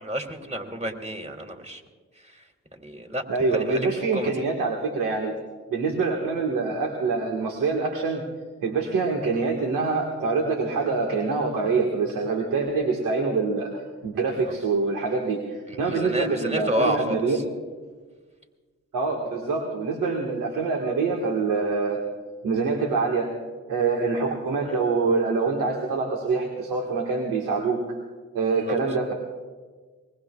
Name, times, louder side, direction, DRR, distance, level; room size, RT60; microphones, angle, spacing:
voice 1, 0.0-1.8 2.2-3.2 3.5-4.3 9.2-9.4 14.4-14.5 15.7-17.4 24.7-24.8 28.6-28.8, equal, 20° right, 3 dB, 2.9 m, -31 dB
voice 2, 3.3-5.4 5.7-8.3 8.6-17.4 18.9-22.0 22.4-23.3 23.7-28.0 28.3-29.1, right 4 dB, 85° right, 1 dB, 1.8 m, -25 dB
24.0 x 21.0 x 2.4 m, 1.4 s
supercardioid pair, 50°, 32 cm